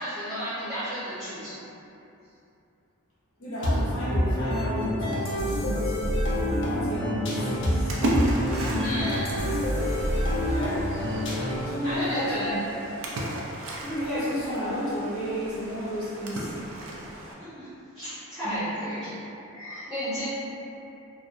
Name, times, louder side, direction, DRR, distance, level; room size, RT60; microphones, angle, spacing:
voice 1, 0.0-1.5 8.5-9.5 11.8-12.5 17.4-17.7 17.9-19.1 19.5-20.3, equal, ahead, -18 dB, 0.7 m, -33 dB
voice 2, 3.4-5.9 6.4-7.9 10.3-10.9 11.6-12.6 13.2-13.4 13.8-16.5 18.4-18.7, equal, 70° left, -9 dB, 0.8 m, -32 dB
sound 1, 3.6-11.8, equal, 55° left, 0.4 m, -27 dB
Splash splatter, 7.4-17.3, right 1 dB, 60° right, 0.3 m, -34 dB
2.6 x 2.0 x 2.4 m, 2.8 s
head